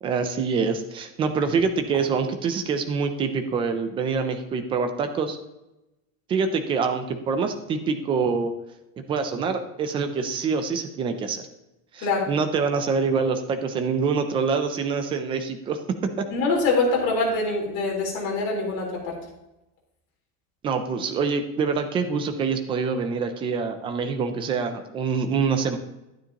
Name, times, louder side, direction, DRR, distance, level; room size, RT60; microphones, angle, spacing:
voice 1, 0.0-5.4 6.3-8.5 9.1-11.4 11.9-15.8 20.6-25.8, right 5 dB, 15° right, 7 dB, 0.3 m, -25 dB
voice 2, 16.3-19.2, left 3 dB, 45° left, -2 dB, 3.8 m, -24 dB
11.5 x 9.6 x 2.9 m, 0.95 s
cardioid pair, 175°, 39 cm